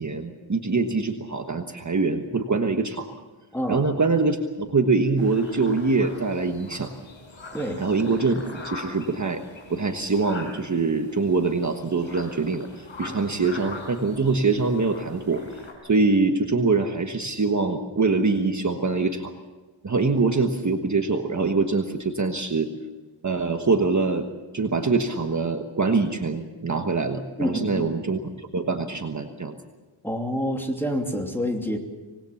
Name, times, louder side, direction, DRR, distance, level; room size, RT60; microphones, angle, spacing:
voice 1, 0.0-3.1 3.7-6.9 7.8-9.4 9.7-19.3 19.8-22.7 23.2-24.3 24.5-29.6, right 3 dB, 35° right, 4 dB, 1.3 m, -24 dB
voice 2, 3.5-3.8 7.5-7.8 27.4-27.9 30.0-31.8, equal, 5° left, 2 dB, 2.9 m, -27 dB
sound 1, 5.2-15.7, left 3 dB, 65° left, 5.5 m, -42 dB
25.5 x 20.0 x 7.1 m, 1.2 s
wide cardioid pair, 135°, 50 cm